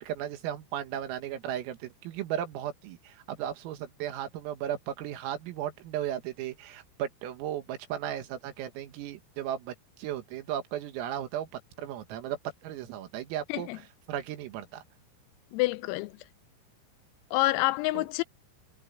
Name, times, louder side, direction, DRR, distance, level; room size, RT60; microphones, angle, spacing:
voice 1, 0.0-11.5 11.8-14.8 17.9-18.0, right 11 dB, 85° right, 4.5 m, -36 dB
voice 2, 15.5-16.2 17.3-18.2, left 20 dB, 90° left, 3.4 m, -27 dB
omnidirectional pair, 6.0 m